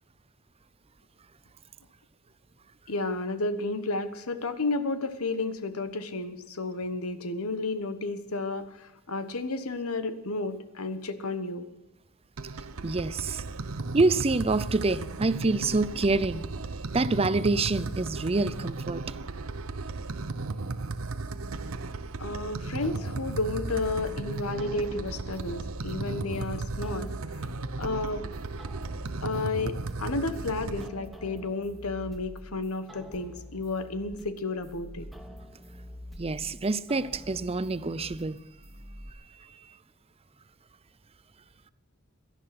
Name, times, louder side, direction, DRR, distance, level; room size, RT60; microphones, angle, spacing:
voice 1, 2.9-11.7 22.2-27.4 27.8-28.3 29.2-35.1, left 3 dB, 90° left, 1.3 m, -32 dB
sound 1, 12.4-30.9, right 3 dB, 70° right, 0.8 m, -35 dB
voice 2, 12.8-13.4 13.9-16.4 16.9-19.0 36.2-38.4, right 3 dB, 30° right, 0.6 m, -26 dB
sound 2, 22.8-39.1, equal, ahead, 1.2 m, -46 dB
17.5 x 12.5 x 6.0 m
head